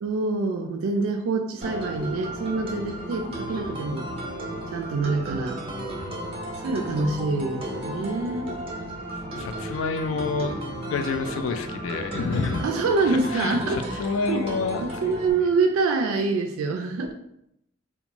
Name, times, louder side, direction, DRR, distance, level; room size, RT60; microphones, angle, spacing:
voice 1, 0.0-4.1 4.7-5.6 6.6-8.5 12.6-14.5 14.8-17.1, right 3 dB, 90° right, 5 dB, 0.3 m, -26 dB
sound 1, 1.6-15.3, right 1 dB, 30° right, 0.5 m, -34 dB
voice 2, 9.3-12.6 13.1-15.0, left 4 dB, 75° left, 7 dB, 0.3 m, -29 dB
2.5 x 2.2 x 2.8 m, 0.77 s
head